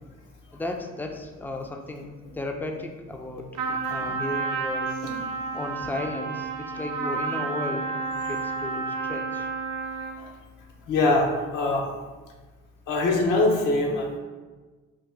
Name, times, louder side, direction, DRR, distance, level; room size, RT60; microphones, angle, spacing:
voice 1, 0.5-2.1 2.3-4.9 5.5-9.5, left 2 dB, 5° left, 3 dB, 0.4 m, -35 dB
Trumpet, 3.5-10.2, right 4 dB, 60° right, 0.6 m, -30 dB
voice 2, 10.9-11.9 12.9-14.2, left 2 dB, 70° left, 0 dB, 0.8 m, -23 dB
2.8 x 2.3 x 3.6 m, 1.3 s
supercardioid pair, 65°, 32 cm